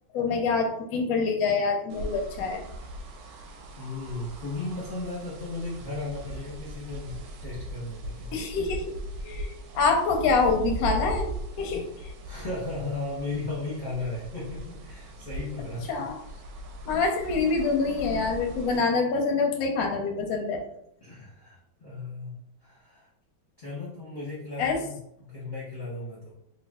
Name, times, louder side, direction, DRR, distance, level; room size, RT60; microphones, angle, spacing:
voice 1, 0.1-2.6 8.3-8.9 9.2-11.3 11.6-11.9 15.9-16.2 16.9-20.6 24.6-24.8, left 4 dB, 65° left, 3 dB, 0.9 m, -26 dB
sound 1, 1.9-18.8, right 1 dB, 70° right, 1.1 m, -39 dB
voice 2, 3.2-3.5 3.8-8.3 12.2-15.9 21.0-23.1 23.6-26.3, left 2 dB, 40° left, -7 dB, 0.7 m, -36 dB
3.2 x 2.3 x 3.5 m, 0.76 s
omnidirectional pair, 2.1 m